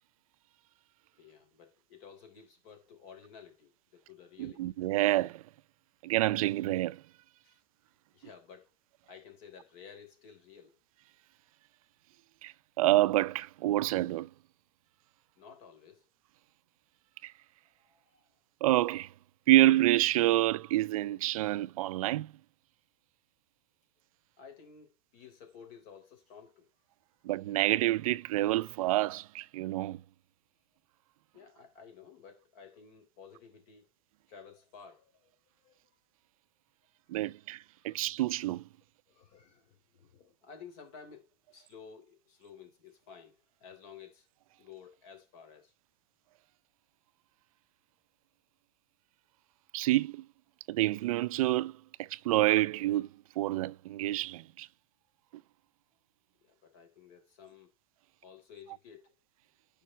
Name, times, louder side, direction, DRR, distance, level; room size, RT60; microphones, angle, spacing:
voice 1, 1.2-4.8 7.4-7.6 8.1-8.7 9.1-10.8 15.4-16.1 17.7-18.3 24.4-26.7 31.3-33.9 34.3-35.3 35.6-35.8 37.9-38.0 39.1-44.3 44.6-45.7 56.4-57.7 58.2-59.1, left 6 dB, 50° left, 3.6 m, -53 dB
voice 2, 4.4-5.4 6.0-7.0 12.4-14.3 17.2-17.3 18.6-19.1 19.5-22.3 27.2-30.0 37.1-38.7 49.7-50.3 50.7-53.1 53.4-54.7, right 16 dB, 70° right, 0.4 m, -28 dB
9.7 x 5.5 x 4.3 m
supercardioid pair, 140°, 18 cm